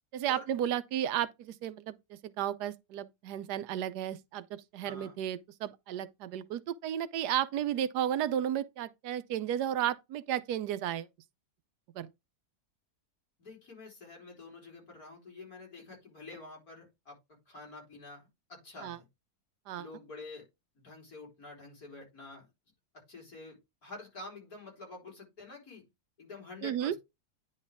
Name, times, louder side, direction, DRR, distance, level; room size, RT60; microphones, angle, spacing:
voice 1, 0.1-11.1 11.9-12.1 18.8-19.0 19.7-19.9 26.6-26.9, right 10 dB, 85° right, 1.2 m, -33 dB
voice 2, 4.8-5.2 13.4-17.2 17.5-19.0 19.8-20.5 20.7-22.5 22.9-25.8 26.2-27.0, left 2 dB, 65° left, 4.5 m, -48 dB
9.7 x 4.4 x 3.5 m
omnidirectional pair, 1.7 m